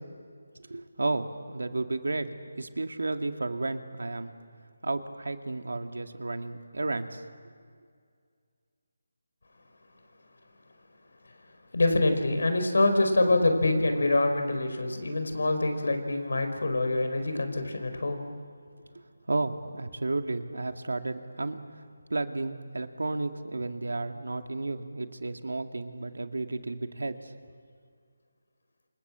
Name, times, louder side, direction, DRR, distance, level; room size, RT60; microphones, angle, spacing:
voice 1, 0.7-4.3 4.8-7.2 18.9-21.8 22.1-27.3, right 2 dB, 85° right, 6 dB, 2.2 m, -32 dB
voice 2, 11.7-18.2, left 2 dB, 75° left, 6 dB, 4.9 m, -25 dB
28.0 x 26.5 x 7.5 m, 2.1 s
figure-of-eight pair, 170°, 0 cm